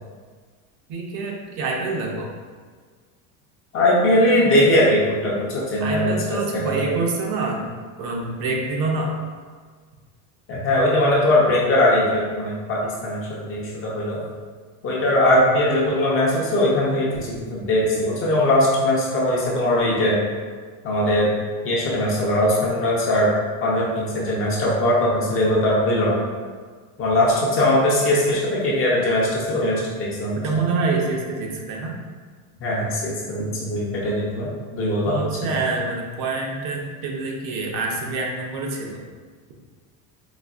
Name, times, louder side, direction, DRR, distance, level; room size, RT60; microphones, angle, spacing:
voice 1, 0.9-2.3 5.8-7.6 8.0-9.2 15.3-15.4 30.3-32.0 35.0-39.0, right 3 dB, 55° right, 0 dB, 0.7 m, -26 dB
voice 2, 3.7-6.9 10.5-14.2 14.8-20.2 20.8-21.3 21.6-23.3 23.6-26.2 27.0-30.6 32.6-35.2 35.4-35.5, left 1 dB, 30° left, -5 dB, 0.6 m, -20 dB
4.0 x 2.5 x 2.4 m, 1.6 s
cardioid pair, 150°, 45 cm